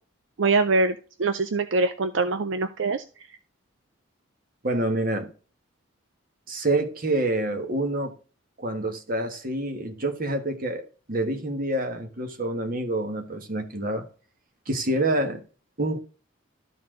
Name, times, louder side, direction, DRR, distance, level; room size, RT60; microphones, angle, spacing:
voice 1, 0.4-0.9 1.2-3.0, right 3 dB, 70° right, 0.6 m, -23 dB
voice 2, 4.6-5.3 6.5-8.2 8.6-14.1 14.7-15.4 15.8-16.0, right 2 dB, 45° right, 1.3 m, -27 dB
13.0 x 4.3 x 3.7 m
head